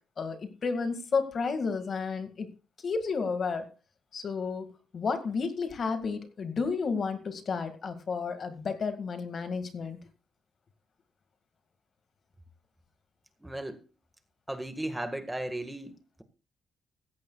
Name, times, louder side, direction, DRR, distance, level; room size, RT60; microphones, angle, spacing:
voice 1, 0.2-2.5 2.8-3.7 4.1-4.7 4.9-10.0, left 5 dB, 50° left, 2.0 m, -31 dB
voice 2, 13.4-13.8 14.5-15.9, right 1 dB, 10° right, 1.7 m, -35 dB
16.0 x 14.5 x 2.4 m
cardioid pair, 90°, 0 cm